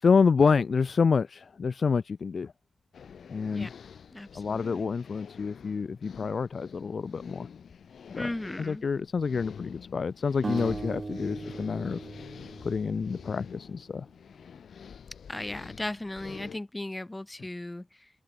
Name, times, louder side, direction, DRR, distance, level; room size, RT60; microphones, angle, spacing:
voice 1, 0.0-2.5 3.3-3.7 4.3-7.5 8.1-8.3 8.6-12.0 12.6-14.1, left 5 dB, 60° left, 0.6 m, -27 dB
sound 1, 2.9-16.6, left 7 dB, 80° left, 7.2 m, -47 dB
voice 2, 4.1-4.9 8.1-8.8 15.3-18.1, left 1 dB, 20° left, 1.6 m, -37 dB
sound 2, 10.4-13.6, right 3 dB, 45° right, 3.3 m, -38 dB
open air
cardioid pair, 60°, 0 cm